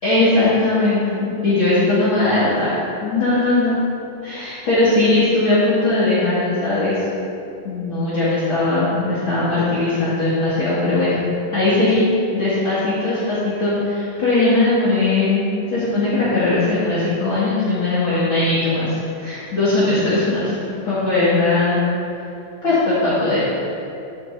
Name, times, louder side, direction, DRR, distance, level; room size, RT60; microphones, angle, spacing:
voice 1, 0.0-2.7 3.0-3.8 4.2-7.0 7.6-11.2 11.5-12.1 12.3-20.6 20.8-21.8 22.6-23.4, left 2 dB, 40° left, -12 dB, 2.5 m, -19 dB
12.5 x 9.9 x 2.7 m, 2.7 s
omnidirectional pair, 4.1 m